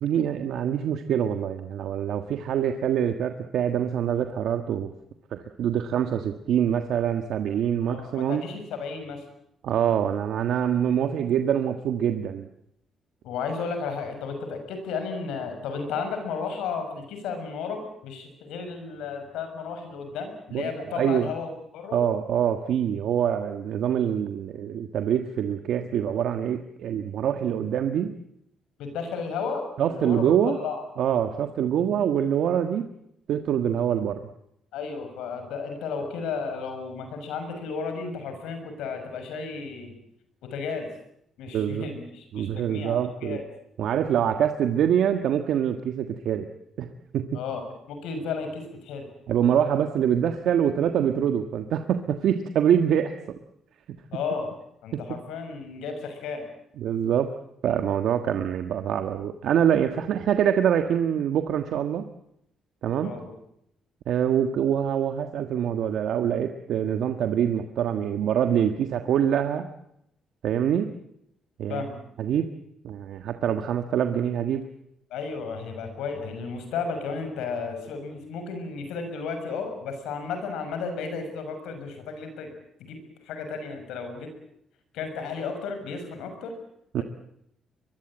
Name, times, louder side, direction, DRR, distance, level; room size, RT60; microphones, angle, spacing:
voice 1, 0.0-4.9 5.3-8.4 9.6-12.5 20.5-20.7 21.0-21.3 21.9-28.1 29.8-30.6 31.0-32.9 33.3-34.2 41.5-41.9 42.3-43.4 43.8-46.5 46.8-46.9 47.1-47.4 49.3-53.1 56.8-57.3 57.6-62.0 62.8-63.1 64.1-69.7 70.4-70.9 71.6-71.8 72.2-72.5 72.8-74.6 86.9-87.0, right 9 dB, 75° right, 7 dB, 1.5 m, -25 dB
voice 2, 7.9-9.2 13.2-22.0 28.8-30.8 34.7-39.9 40.4-40.9 41.4-43.5 47.3-49.1 54.1-54.5 54.8-56.5 63.0-63.3 71.7-72.0 75.1-82.5 82.8-84.3 84.9-86.5 87.0-87.1, left 5 dB, 90° left, 7 dB, 6.4 m, -33 dB
23.5 x 22.0 x 8.9 m, 0.77 s
cardioid pair, 90°, 0 cm